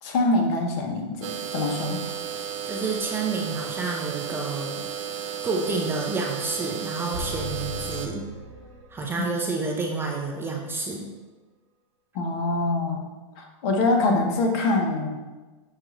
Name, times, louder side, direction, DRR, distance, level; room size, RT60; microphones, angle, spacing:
voice 1, 0.0-2.0 12.1-13.0 13.4-15.1, left 2 dB, 50° left, 2 dB, 0.8 m, -24 dB
sound 1, 1.2-8.1, right 8 dB, 70° right, 0.5 m, -33 dB
voice 2, 2.6-4.8 5.4-8.3 8.9-11.1, right 3 dB, 15° right, 0 dB, 0.4 m, -29 dB
sound 2, 7.1-9.2, left 2 dB, 90° right, 0.9 m, -37 dB
6.3 x 2.4 x 3.0 m, 1.2 s
hypercardioid pair, 130°, 17 cm